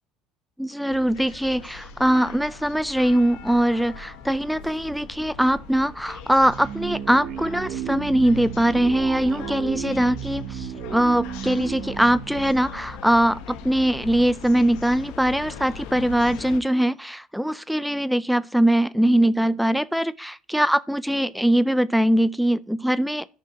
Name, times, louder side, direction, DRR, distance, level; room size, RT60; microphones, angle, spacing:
voice 1, 0.6-23.3, right 1 dB, ahead, 0.4 m, -22 dB
sound 1, 0.9-16.6, left 6 dB, 80° left, 1.2 m, -40 dB
sound 2, 6.4-13.6, right 11 dB, 55° right, 0.5 m, -34 dB
13.0 x 5.7 x 2.9 m
cardioid pair, 120°, 0 cm